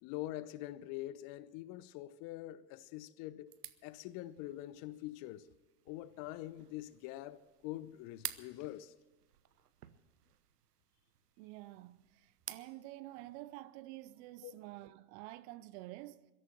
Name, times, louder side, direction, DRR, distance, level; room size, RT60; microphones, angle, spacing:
voice 1, 0.0-3.6 3.8-5.5 5.9-8.9 14.4-14.5, left 15 dB, 45° left, 0.8 m, -44 dB
sound 1, 3.5-12.7, right 11 dB, 80° right, 1.1 m, -52 dB
voice 2, 11.4-16.3, right 17 dB, 45° right, 0.8 m, -49 dB
22.5 x 13.0 x 4.4 m
hypercardioid pair, 90°, 46 cm